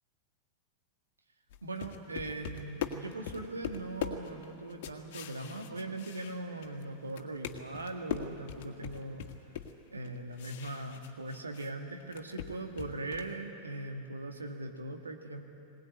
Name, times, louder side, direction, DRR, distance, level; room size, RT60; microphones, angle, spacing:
sound 1, 1.5-6.8 7.1-11.7 12.0-13.4, left 9 dB, 50° left, 1.6 m, -41 dB
voice 1, 1.6-9.3 9.9-15.4, right 2 dB, 75° right, 4 dB, 1.8 m, -40 dB
21.0 x 19.0 x 9.5 m, 2.7 s
figure-of-eight pair, 90°, 0 cm